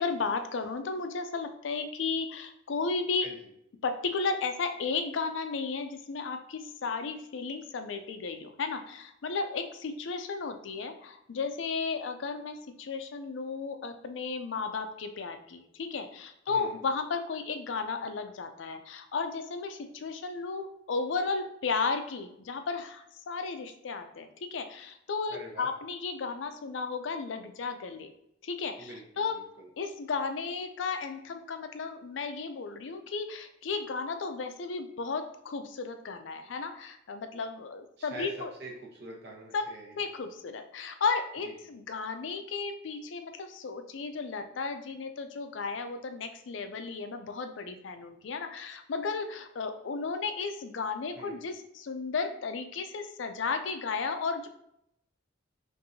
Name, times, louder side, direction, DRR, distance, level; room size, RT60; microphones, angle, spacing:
voice 1, 0.0-3.3 3.8-28.1 28.4-29.4 29.8-38.5 39.5-39.7 40.0-54.5, left 4 dB, 75° left, 8 dB, 0.4 m, -34 dB
voice 2, 25.3-25.7 28.8-29.7 38.0-38.3 38.6-40.0 41.4-41.5 51.1-51.4, right 2 dB, 60° right, 0 dB, 1.0 m, -45 dB
5.5 x 2.6 x 2.7 m, 0.76 s
head